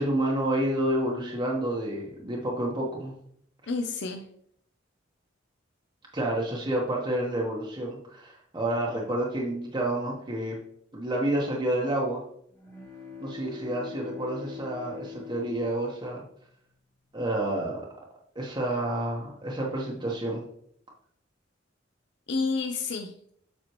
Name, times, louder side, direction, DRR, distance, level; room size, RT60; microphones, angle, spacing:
voice 1, 0.0-3.1 6.1-10.6 10.9-12.2 13.2-16.2 17.1-17.8 18.3-20.4, right 1 dB, 25° right, -3 dB, 1.1 m, -29 dB
voice 2, 3.7-4.2 22.3-23.3, left 4 dB, 65° left, 5 dB, 0.6 m, -30 dB
sound 1, 12.5-16.5, left 6 dB, 15° left, 1.3 m, -43 dB
7.7 x 5.9 x 3.0 m, 0.68 s
head